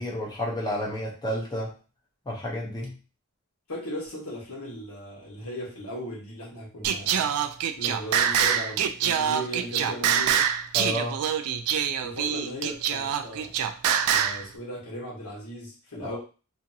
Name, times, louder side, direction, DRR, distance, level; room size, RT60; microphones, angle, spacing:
voice 1, 0.0-1.7 2.3-3.0 10.7-11.2 16.0-16.2, equal, 20° left, -3 dB, 0.6 m, -31 dB
voice 2, 3.7-7.3 7.8-10.5 12.0-13.5 14.0-16.2, equal, 80° left, -3 dB, 1.2 m, -37 dB
Singing, 6.8-14.4, right 8 dB, 85° right, 0.3 m, -25 dB
2.7 x 2.6 x 2.6 m, 0.34 s
head